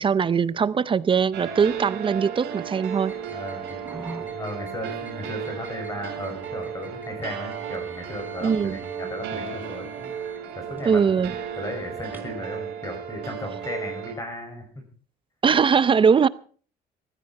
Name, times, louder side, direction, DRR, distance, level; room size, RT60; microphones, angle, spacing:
voice 1, 0.0-3.1 8.4-8.8 10.9-11.3 15.4-16.3, right 6 dB, 30° right, 0.6 m, -21 dB
sound 1, 1.3-14.1, right 8 dB, 80° right, 4.9 m, -35 dB
sound 2, 3.0-12.4, right 2 dB, 10° right, 3.9 m, -46 dB
voice 2, 3.3-3.8 4.2-10.1 10.5-11.0 11.6-14.7, left 1 dB, 20° left, 6.5 m, -35 dB
16.5 x 15.0 x 4.5 m
cardioid pair, 110°, 17 cm